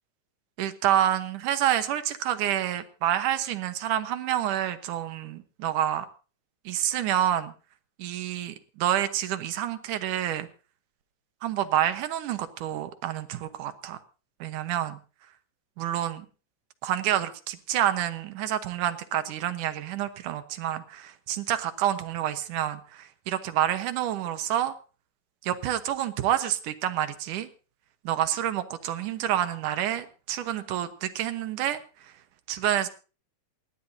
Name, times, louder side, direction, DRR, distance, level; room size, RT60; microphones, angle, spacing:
voice 1, 0.6-6.1 6.7-7.5 8.0-10.5 11.4-14.0 14.4-15.0 15.8-16.3 16.8-24.7 25.4-27.5 28.0-31.8 32.5-32.9, right 11 dB, 75° right, 10 dB, 2.6 m, -28 dB
28.5 x 11.0 x 2.8 m, 0.35 s
omnidirectional pair, 3.8 m